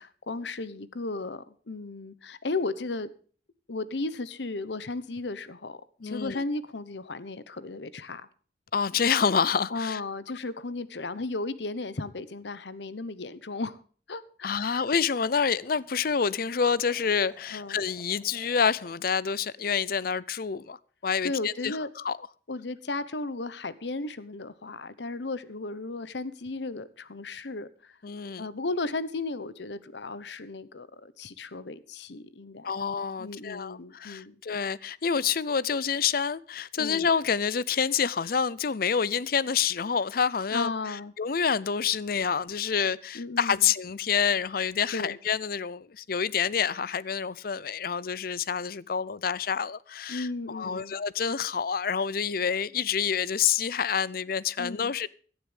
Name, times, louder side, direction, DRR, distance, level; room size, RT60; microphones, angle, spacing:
voice 1, 0.0-3.1 3.7-8.3 9.7-13.8 14.1-14.8 17.5-17.8 21.2-21.9 22.5-27.9 28.4-32.7 33.2-34.4 36.8-37.1 40.5-41.1 43.1-43.7 44.9-45.2 50.1-51.0 54.6-54.9, left 3 dB, 75° left, 1.0 m, -35 dB
voice 2, 6.0-6.4 8.7-10.0 14.4-20.8 21.0-22.2 28.0-28.5 32.6-40.7 41.2-55.1, left 6 dB, 55° left, 0.6 m, -28 dB
sound 1, 15.3-19.0, left 1 dB, 10° left, 2.4 m, -58 dB
17.0 x 12.0 x 3.4 m
head